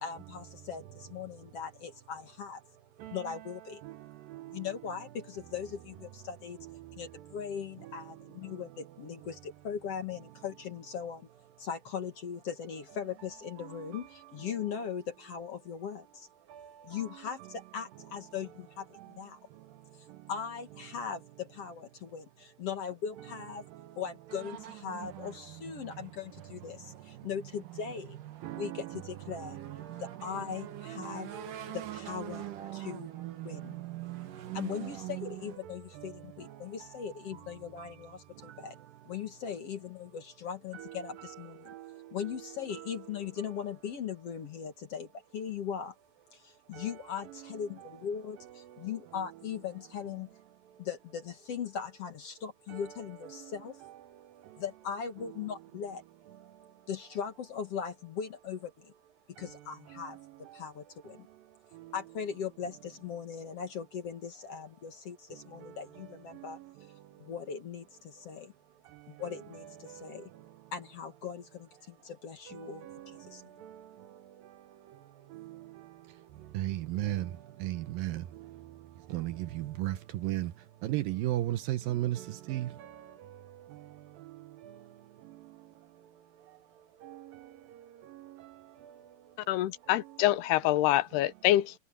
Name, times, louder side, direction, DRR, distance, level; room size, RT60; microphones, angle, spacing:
voice 1, 0.0-2.6 3.1-3.8 4.5-6.6 7.0-11.3 11.6-16.3 16.8-19.4 20.3-23.6 24.0-28.2 28.6-29.6 30.0-31.3 31.7-32.4 32.7-33.1 33.4-33.7 34.5-38.7 39.1-41.7 42.1-46.0 46.3-50.3 50.8-53.8 54.6-56.0 56.9-58.9 59.4-60.2 60.5-61.3 61.9-66.6 67.2-68.5 69.1-70.3 70.7-73.4, left 7 dB, 55° left, 1.9 m, -39 dB
sound 1, 24.3-35.6, right 13 dB, 60° right, 3.0 m, -43 dB
voice 2, 28.4-28.9 52.7-52.8 76.5-77.3 77.6-78.2 79.1-80.0 80.2-80.5 80.8-82.2 82.5-82.7, right 14 dB, 75° right, 2.3 m, -32 dB
voice 3, 89.5-91.8, left 15 dB, 85° left, 2.9 m, -26 dB
omnidirectional pair, 4.6 m